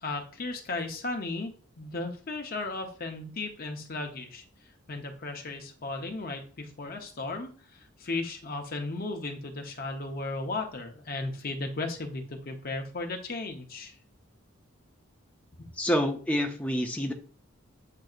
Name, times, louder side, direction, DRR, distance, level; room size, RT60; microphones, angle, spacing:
voice 1, 0.0-4.4 4.9-13.9, left 2 dB, 45° left, 4 dB, 0.7 m, -35 dB
voice 2, 15.8-17.1, equal, 5° left, 3 dB, 0.5 m, -27 dB
7.5 x 2.7 x 2.4 m, 0.41 s
head